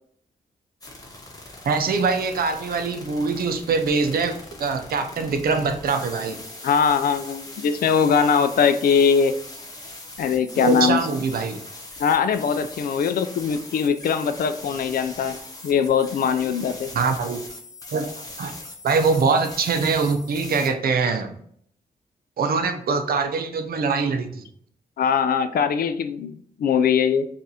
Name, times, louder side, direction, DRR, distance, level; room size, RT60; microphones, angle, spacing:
sound 1, 0.8-20.7, left 2 dB, 25° left, 0.9 m, -41 dB
voice 1, 1.7-6.4 10.6-11.6 16.9-17.4 17.9-18.1 18.4-18.5 18.8-21.3 22.4-24.5, right 4 dB, 85° right, 6 dB, 0.6 m, -23 dB
voice 2, 6.6-9.4 10.2-11.0 12.0-15.4 15.6-16.9 25.0-27.3, left 6 dB, 80° left, 10 dB, 0.4 m, -21 dB
5.4 x 2.5 x 2.8 m, 0.64 s
wide cardioid pair, 110°, 15 cm